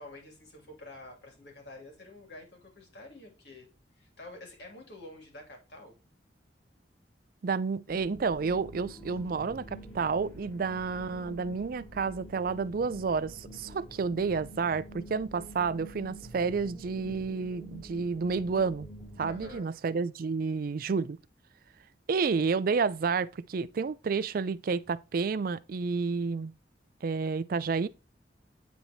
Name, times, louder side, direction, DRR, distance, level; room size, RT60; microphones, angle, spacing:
voice 1, 0.0-3.7 4.0-5.9 19.2-19.7, left 2 dB, 65° left, 2.9 m, -48 dB
voice 2, 7.4-18.9 19.2-21.2 22.1-26.5 27.0-27.9, right 5 dB, 55° right, 0.4 m, -30 dB
sound 1, 7.9-19.6, right 1 dB, 5° left, 2.3 m, -47 dB
9.3 x 4.1 x 2.9 m
head